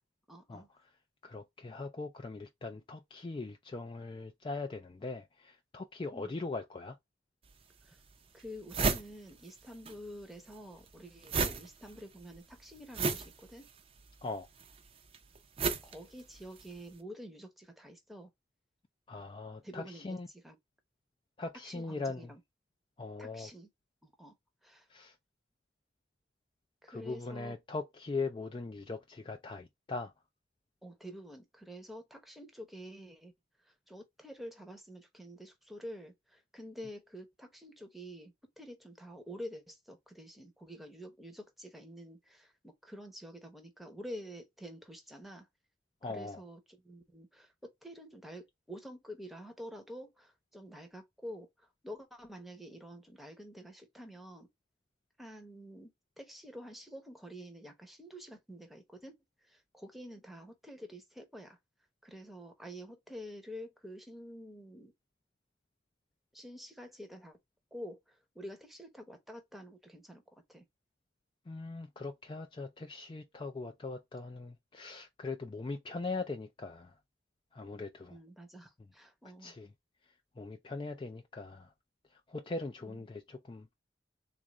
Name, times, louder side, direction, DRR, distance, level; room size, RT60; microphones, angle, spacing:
voice 1, 0.3-0.7 6.1-6.3 7.8-8.0 8.3-13.7 15.8-18.3 19.6-20.6 21.6-22.4 23.2-23.7 24.0-24.3 24.6-24.9 26.8-27.6 30.8-33.3 33.6-45.5 46.0-54.5 55.2-55.9 56.2-59.1 59.4-61.6 62.0-64.9 66.3-67.4 67.7-70.6 78.1-79.5, equal, ahead, 0.8 m, -48 dB
voice 2, 1.2-7.0 14.2-14.5 19.1-20.3 21.4-22.3 23.0-23.5 24.9-25.1 26.9-30.1 46.0-46.4 71.5-76.9 77.5-78.2 79.4-79.7 80.4-81.7 82.1-83.7, left 3 dB, 25° left, 0.3 m, -40 dB
sound 1, 7.5-7.6 8.1-8.2 8.4-10.0 10.2-16.8, right 4 dB, 30° right, 0.5 m, -34 dB
3.7 x 2.5 x 3.0 m
head